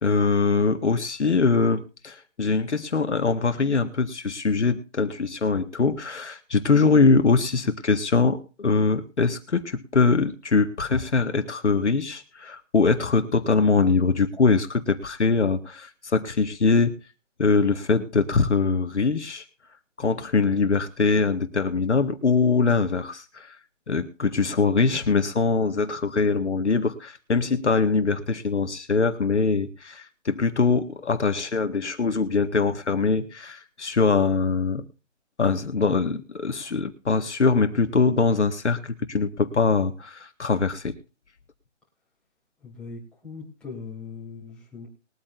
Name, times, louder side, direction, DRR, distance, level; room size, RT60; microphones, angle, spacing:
voice 1, 0.0-16.9 17.4-19.4 20.0-23.6 23.9-34.8 35.4-40.9, left 4 dB, 65° left, 7 dB, 1.9 m, -23 dB
voice 2, 42.6-44.9, left 4 dB, ahead, -6 dB, 3.3 m, -40 dB
22.0 x 9.0 x 2.7 m, 0.34 s
figure-of-eight pair, 165°, 37 cm